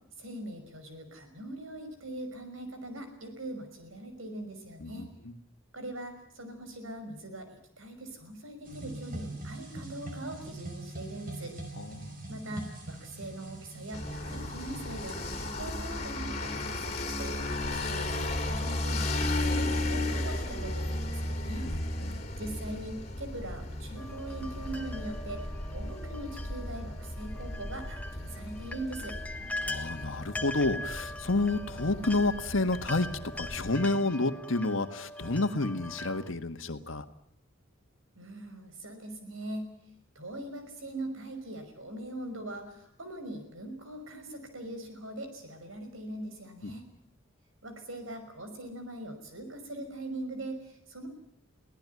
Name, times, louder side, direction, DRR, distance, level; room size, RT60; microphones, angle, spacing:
voice 1, 0.2-5.1 5.7-11.5 12.3-15.2 15.5-17.3 17.7-21.7 22.4-29.2 38.2-39.7 40.2-46.8 47.6-51.1, right 1 dB, 90° right, 7 dB, 5.6 m, -41 dB
voice 2, 4.8-5.3 11.8-12.2 21.6-22.2 29.6-37.0 46.6-46.7, left 2 dB, 75° left, 9 dB, 1.6 m, -30 dB
sound 1, 8.7-15.5, right 2 dB, 45° right, 5.4 m, -43 dB
sound 2, 13.9-33.7, left 1 dB, 30° left, 3.2 m, -35 dB
sound 3, 24.0-36.3, left 2 dB, 5° left, 1.5 m, -42 dB
23.5 x 17.0 x 9.6 m, 0.70 s
head